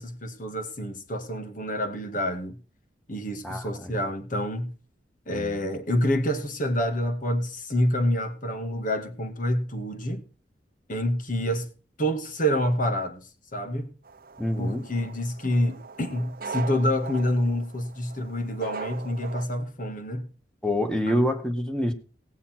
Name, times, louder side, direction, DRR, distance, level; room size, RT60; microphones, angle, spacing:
voice 1, 0.0-2.6 3.1-4.7 5.3-10.2 10.9-11.7 12.0-13.9 14.6-20.3, equal, 50° left, 2.1 m, -27 dB
voice 2, 3.4-3.9 5.3-5.5 14.4-14.8 20.6-21.9, left 1 dB, 5° left, 1.8 m, -26 dB
sound 1, 14.0-19.5, right 4 dB, 55° right, 1.1 m, -40 dB
19.0 x 7.1 x 4.5 m
head